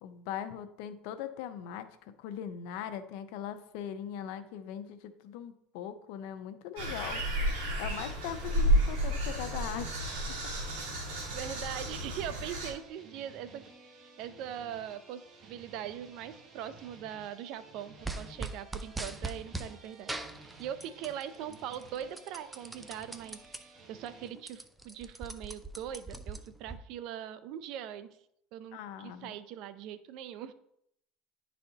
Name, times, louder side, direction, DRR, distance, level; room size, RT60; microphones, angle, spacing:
voice 1, 0.0-1.9 2.2-7.2 7.8-10.0 28.7-29.3, left 9 dB, 75° left, 10 dB, 0.6 m, -40 dB
sound 1, 6.8-24.3, right 4 dB, 45° right, 1.2 m, -54 dB
sound 2, 6.8-12.7, right 1 dB, 85° right, 2.1 m, -31 dB
voice 2, 11.3-20.1 20.6-28.1 28.5-30.5, right 10 dB, 65° right, 13 dB, 0.5 m, -41 dB
sound 3, 18.0-19.7 20.1-21.2 21.5-23.6 24.0-24.1 24.3-26.8, right 3 dB, 10° right, 0.6 m, -40 dB
10.5 x 4.1 x 2.8 m, 0.75 s
supercardioid pair, 105°, 0 cm